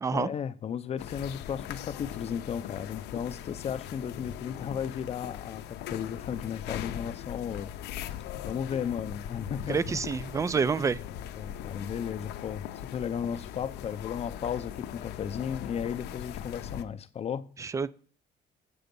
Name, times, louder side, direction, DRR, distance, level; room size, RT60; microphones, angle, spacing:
voice 1, 0.1-7.7 8.4-9.8 10.3-10.4 11.4-17.5, left 8 dB, 40° left, 0.5 m, -35 dB
sound 1, 1.0-16.8, left 11 dB, 80° left, 0.6 m, -40 dB
voice 2, 9.7-11.0 17.6-17.9, right 5 dB, 20° right, 0.3 m, -28 dB
6.9 x 5.1 x 5.3 m
cardioid pair, 110°, 17 cm